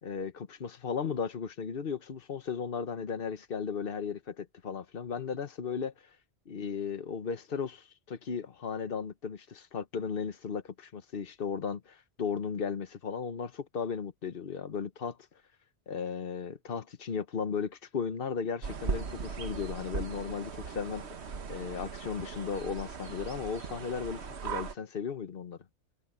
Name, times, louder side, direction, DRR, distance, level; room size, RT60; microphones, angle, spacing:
voice 1, 0.0-5.9 6.5-15.2 15.9-21.0 21.5-25.6, left 6 dB, 55° left, 1.3 m, -35 dB
sound 1, 18.6-24.7, right 5 dB, 70° right, 1.5 m, -38 dB
omnidirectional pair, 1.2 m